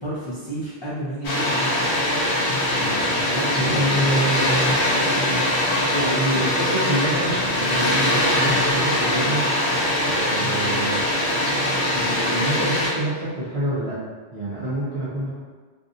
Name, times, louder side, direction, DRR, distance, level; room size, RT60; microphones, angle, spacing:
voice 1, 0.0-1.7 2.8-4.2 5.2-5.4 9.0-9.4 12.2-12.3, equal, 30° left, -10 dB, 0.6 m, -32 dB
Water, 1.2-12.9, left 1 dB, 90° left, 1.0 m, -22 dB
voice 2, 3.5-4.8 5.9-9.5 10.0-11.0 11.9-14.0 14.3-15.3, right 1 dB, 40° right, -11 dB, 0.7 m, -27 dB
3.4 x 2.5 x 2.6 m, 1.4 s
omnidirectional pair, 1.1 m